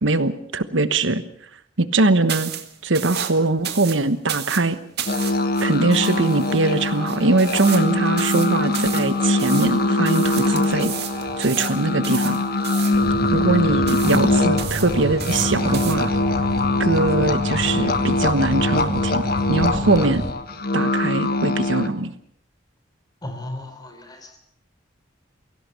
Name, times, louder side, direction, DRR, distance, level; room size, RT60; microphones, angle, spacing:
voice 1, 0.0-1.2 1.8-2.5 2.8-4.8 5.6-10.9 11.4-12.4 13.3-16.1 16.8-20.2 20.7-22.1, right 2 dB, 80° right, 12 dB, 1.2 m, -21 dB
sound 1, 2.3-16.0, right 10 dB, 60° right, 2.0 m, -34 dB
sound 2, 5.1-21.9, left 2 dB, 50° left, 1.5 m, -22 dB
sound 3, 6.0-20.3, right 1 dB, 20° right, 1.6 m, -32 dB
voice 2, 23.2-24.4, left 1 dB, 20° left, 6 dB, 4.1 m, -35 dB
23.0 x 17.0 x 7.0 m, 0.65 s
head